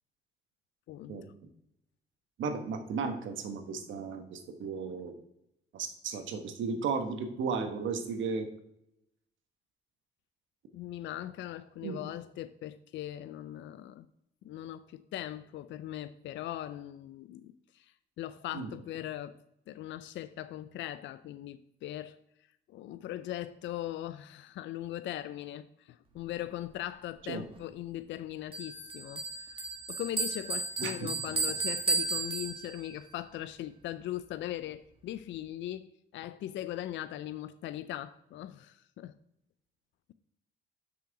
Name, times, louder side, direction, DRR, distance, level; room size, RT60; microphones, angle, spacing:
voice 1, 2.4-5.1 5.7-8.5 11.8-12.0 18.5-18.7 27.3-27.4 30.8-31.1, right 5 dB, 75° right, 1.1 m, -35 dB
voice 2, 10.7-14.1 14.4-19.4 19.7-22.2 22.7-29.2 29.5-29.6 29.9-39.2, left 13 dB, 70° left, 0.4 m, -40 dB
Bell, 28.5-33.0, right 3 dB, 25° right, 1.7 m, -34 dB
6.2 x 5.7 x 4.7 m
cardioid pair, 90°, 20 cm